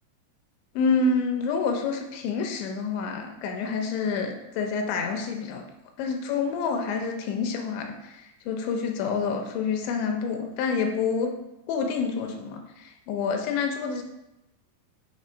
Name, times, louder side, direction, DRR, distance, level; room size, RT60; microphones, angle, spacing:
voice 1, 0.8-5.6 6.0-11.3 11.7-14.0, left 5 dB, 80° left, 4 dB, 2.8 m, -28 dB
7.5 x 3.1 x 4.4 m, 0.93 s
omnidirectional pair, 5.4 m